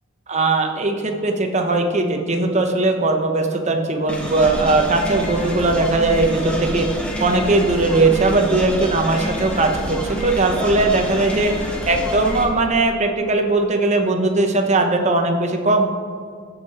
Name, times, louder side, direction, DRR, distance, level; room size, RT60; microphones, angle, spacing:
voice 1, 0.3-6.9 7.2-11.5 11.9-15.8, right 2 dB, 30° right, 3 dB, 1.0 m, -19 dB
sound 1, 4.1-12.5, equal, 5° left, 1.2 m, -27 dB
15.0 x 5.7 x 4.3 m, 2.2 s
head